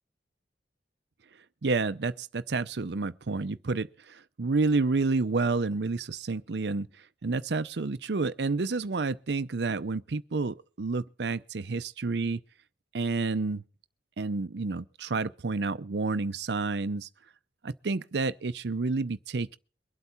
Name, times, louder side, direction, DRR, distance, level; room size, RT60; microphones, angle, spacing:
voice 1, 1.6-6.9 7.2-12.4 12.9-13.6 14.2-17.1 17.6-19.6, right 3 dB, 70° right, 0.6 m, -29 dB
23.0 x 8.2 x 4.3 m
head